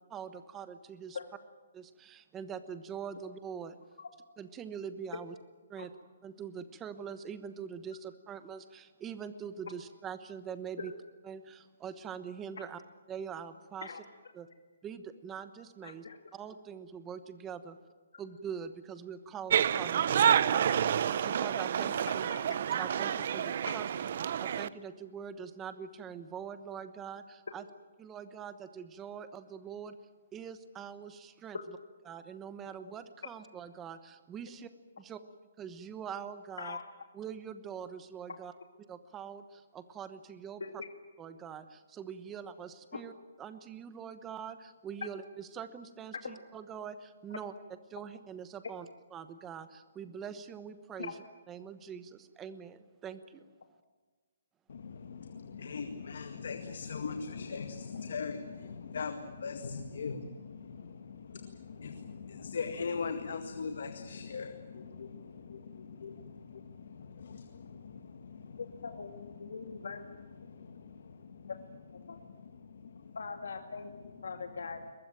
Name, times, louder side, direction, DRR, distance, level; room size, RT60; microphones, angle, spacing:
voice 1, 0.1-1.2 1.7-3.8 4.4-5.3 5.7-5.9 6.2-10.9 11.2-12.8 13.1-13.9 14.3-14.5 14.8-16.0 16.3-17.8 18.2-22.3 22.7-23.9 24.4-27.6 28.0-30.0 30.3-31.6 32.1-34.7 35.0-35.2 35.6-36.8 37.1-38.5 38.8-40.6 41.2-43.1 43.4-47.5 47.9-51.1 51.5-53.4, right 7 dB, 10° right, 12 dB, 1.1 m, -43 dB
voice 2, 15.8-16.2 22.3-22.4 23.7-23.8 31.5-31.6 32.8-32.9 36.6-36.8 40.6-40.7 46.2-46.4 51.0-51.2 68.6-70.1 71.9-72.2 73.1-74.9, left 5 dB, 80° left, 5 dB, 2.1 m, -41 dB
sound 1, 19.5-24.7, right 9 dB, 45° right, 0.7 m, -29 dB
voice 3, 54.7-69.9 70.4-71.5 72.0-73.2, left 5 dB, 60° left, 7 dB, 1.9 m, -41 dB
23.0 x 20.5 x 9.0 m, 1.4 s
hypercardioid pair, 170°, 0 cm